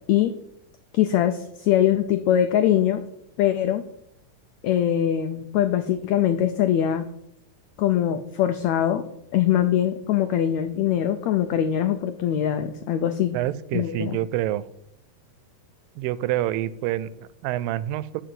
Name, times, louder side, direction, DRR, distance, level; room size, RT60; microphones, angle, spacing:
voice 1, 0.9-3.0 3.4-3.8 4.6-7.1 7.8-9.0 9.3-13.4 13.7-14.2, left 10 dB, 90° left, 9 dB, 1.5 m, -22 dB
voice 2, 13.3-14.6 16.0-18.2, right 13 dB, 90° right, 17 dB, 2.3 m, -27 dB
11.5 x 4.9 x 7.6 m, 0.78 s
omnidirectional pair, 3.9 m